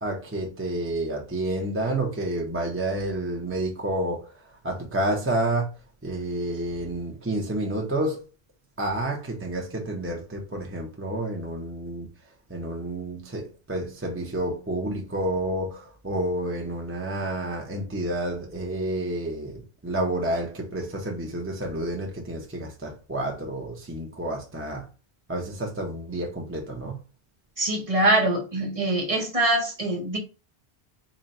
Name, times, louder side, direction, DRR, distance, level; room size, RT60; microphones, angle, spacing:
voice 1, 0.0-4.3 4.6-5.7 6.0-8.2 8.8-12.1 12.5-24.9 25.3-27.0, right 1 dB, 15° right, 0.6 m, -29 dB
voice 2, 27.6-30.2, right 1 dB, 35° right, 1.0 m, -23 dB
3.9 x 2.2 x 4.1 m
omnidirectional pair, 1.1 m